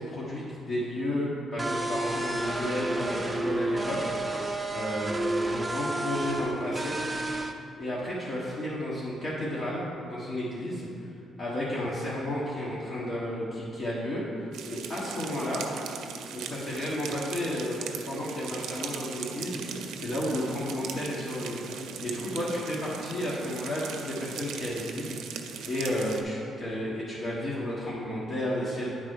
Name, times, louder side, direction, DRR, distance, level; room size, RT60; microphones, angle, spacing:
voice 1, 0.0-6.9 7.7-15.7 16.3-28.9, left 1 dB, 50° left, -8 dB, 1.5 m, -32 dB
sound 1, 1.6-7.5, right 2 dB, 15° right, 0.5 m, -31 dB
sound 2, 14.5-26.2, right 7 dB, 85° right, 0.5 m, -39 dB
8.9 x 4.0 x 4.7 m, 2.5 s
cardioid pair, 90°, 0 cm